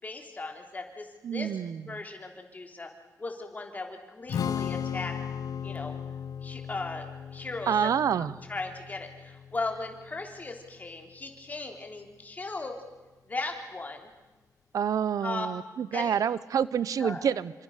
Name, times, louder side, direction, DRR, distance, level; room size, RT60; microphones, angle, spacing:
voice 1, 0.0-1.5 1.9-2.9 3.2-5.2 5.6-5.9 6.4-7.9 8.2-12.8 13.3-14.1 15.2-15.5 15.9-16.1 17.0-17.2, left 3 dB, 30° left, 3 dB, 3.6 m, -37 dB
voice 2, 1.2-2.0 7.7-8.3 14.7-17.5, right 8 dB, 75° right, 17 dB, 0.7 m, -28 dB
Strum, 4.3-10.6, left 8 dB, 90° left, 0.9 m, -36 dB
27.0 x 25.5 x 6.6 m, 1.2 s
wide cardioid pair, 140°, 6 cm